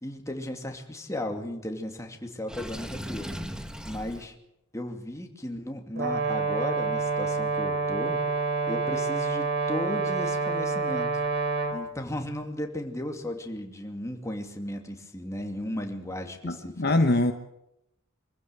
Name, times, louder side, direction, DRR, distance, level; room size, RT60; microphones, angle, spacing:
voice 1, 0.0-4.4 4.7-8.2 8.7-11.2 11.7-16.9, left 1 dB, 15° left, 3 dB, 2.5 m, -35 dB
Water / Sink (filling or washing), 2.5-4.3, equal, 5° right, 1.2 m, -37 dB
Brass instrument, 5.9-11.8, right 4 dB, 50° right, 3.1 m, -28 dB
voice 2, 16.4-17.3, left 2 dB, 50° left, 6 dB, 1.2 m, -23 dB
25.0 x 15.5 x 8.1 m, 0.85 s
head